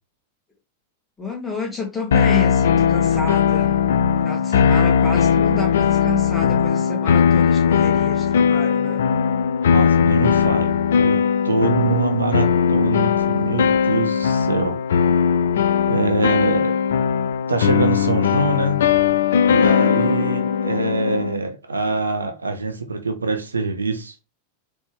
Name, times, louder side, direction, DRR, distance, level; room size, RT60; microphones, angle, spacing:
voice 1, 1.2-3.7 4.2-9.1, left 3 dB, 15° left, 1.9 m, -29 dB
sound 1, 2.1-21.4, left 7 dB, 60° left, 0.3 m, -19 dB
voice 2, 9.7-14.8 15.9-16.7 17.5-18.9 19.5-24.2, right 3 dB, 75° right, 0.8 m, -24 dB
4.1 x 3.5 x 3.4 m
figure-of-eight pair, 90°, 0 cm